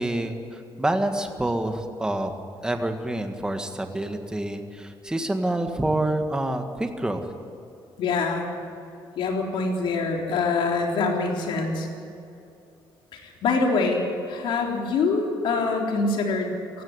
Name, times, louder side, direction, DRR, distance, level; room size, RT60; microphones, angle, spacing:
voice 1, 0.0-2.3 2.6-7.3, right 1 dB, 10° right, 5 dB, 1.8 m, -27 dB
voice 2, 8.0-8.5 9.2-11.9 13.1-16.8, left 4 dB, 75° left, 1 dB, 3.7 m, -25 dB
17.5 x 15.5 x 9.8 m, 2.6 s
cardioid pair, 130°, 9 cm